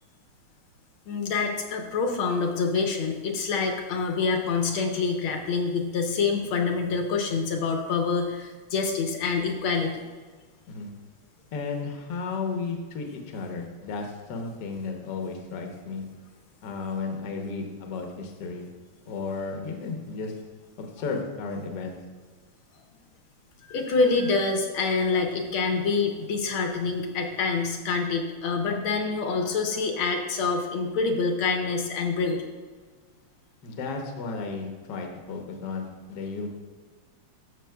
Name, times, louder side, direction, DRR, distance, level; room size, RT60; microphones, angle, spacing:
voice 1, 1.1-10.0 23.7-32.5, left 4 dB, 80° left, 3 dB, 1.6 m, -26 dB
voice 2, 11.5-16.0 16.6-18.6 19.1-20.3 20.8-22.0 33.6-36.5, left 4 dB, 60° left, 2 dB, 1.4 m, -33 dB
13.0 x 6.0 x 2.3 m, 1.4 s
omnidirectional pair, 2.3 m